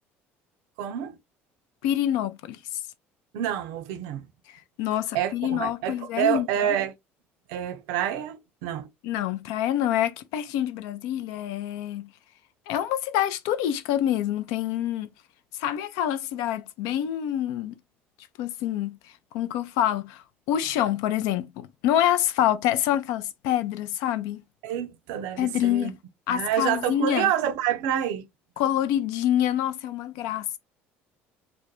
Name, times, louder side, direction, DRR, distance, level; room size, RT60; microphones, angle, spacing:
voice 1, 0.8-1.2 3.3-4.3 5.1-6.9 7.5-8.9 24.6-25.9 26.3-28.3, right 10 dB, 75° right, 0.4 m, -28 dB
voice 2, 1.8-2.6 4.8-6.5 9.0-12.1 12.7-15.1 15.6-17.8 18.4-19.0 19.3-24.4 25.4-26.0 26.3-27.3 28.6-30.6, left 11 dB, 75° left, 0.4 m, -26 dB
2.3 x 2.1 x 2.9 m
supercardioid pair, 80°, 6 cm